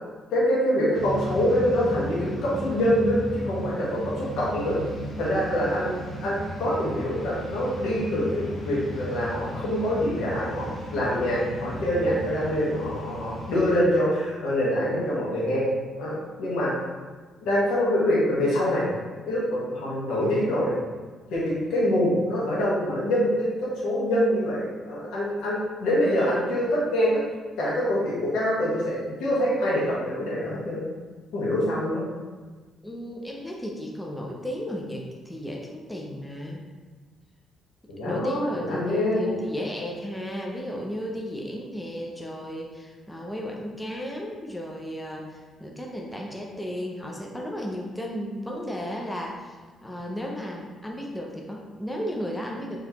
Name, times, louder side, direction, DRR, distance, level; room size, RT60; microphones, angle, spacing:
voice 1, 0.3-4.8 5.2-5.9 6.2-15.7 16.0-16.7 17.4-18.9 19.3-20.8 21.3-27.2 27.6-30.8 31.3-32.0 37.9-39.4, equal, 85° left, -6 dB, 1.2 m, -25 dB
sound 1, 0.9-13.8, equal, 45° left, 1.3 m, -35 dB
voice 2, 32.8-36.6 38.0-52.8, equal, 10° left, -1 dB, 0.5 m, -34 dB
3.8 x 2.9 x 2.9 m, 1.4 s
cardioid pair, 90°, 0 cm